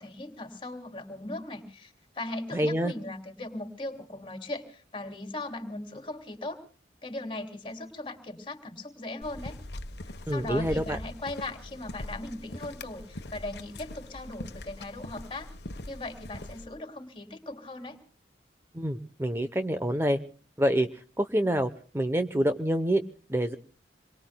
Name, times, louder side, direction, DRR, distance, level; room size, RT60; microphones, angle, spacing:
voice 1, 0.0-6.6 7.0-9.6 10.3-15.5 15.9-18.0, left 2 dB, 30° left, 5 dB, 3.1 m, -38 dB
voice 2, 2.5-2.9 10.3-11.0 18.7-20.2 20.6-23.0 23.3-23.6, equal, 15° right, 8 dB, 0.8 m, -27 dB
sound 1, 9.2-16.7, left 1 dB, 70° left, 1.2 m, -42 dB
27.5 x 22.5 x 2.3 m, 0.41 s
head